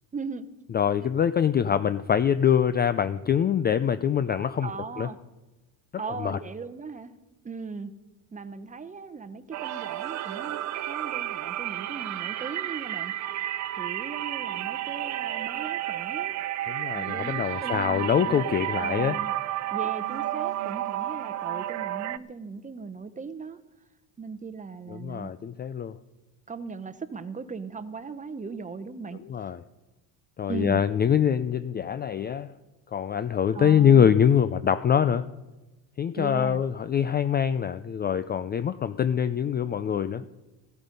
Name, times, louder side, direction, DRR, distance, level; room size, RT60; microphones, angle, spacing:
voice 1, 0.1-0.5 1.0-1.1 4.6-5.2 6.0-7.1 7.4-7.9 8.3-10.6 10.8-13.1 13.8-16.3 16.9-18.4 18.8-19.3 19.7-23.6 24.2-25.3 26.5-29.2 30.5-30.8 33.5-34.1 36.2-36.6 40.2-40.3, right 4 dB, 15° right, 11 dB, 0.9 m, -38 dB
voice 2, 0.7-4.7 5.0-5.1 6.2-6.4 16.7-19.2 24.9-26.0 29.3-29.6 30.4-32.5 32.9-35.3 36.0-40.2, left 8 dB, 25° left, 12 dB, 0.4 m, -24 dB
sound 1, 9.5-22.2, right 13 dB, 40° right, 0.5 m, -31 dB
16.0 x 13.5 x 5.3 m, 1.1 s
cardioid pair, 120°, 43 cm